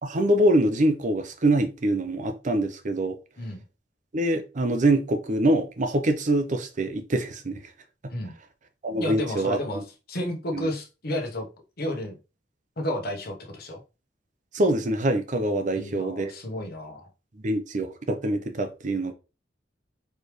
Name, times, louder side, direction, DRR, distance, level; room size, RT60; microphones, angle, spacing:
voice 1, 0.0-3.2 4.1-7.6 8.8-9.8 10.5-10.7 14.5-16.3 17.4-19.1, right 1 dB, 45° right, 7 dB, 0.7 m, -24 dB
voice 2, 9.0-9.8 10.1-11.5 11.8-12.2 12.8-13.8 15.7-17.1, left 1 dB, 60° left, 1 dB, 1.1 m, -32 dB
4.4 x 3.4 x 3.1 m, 0.30 s
head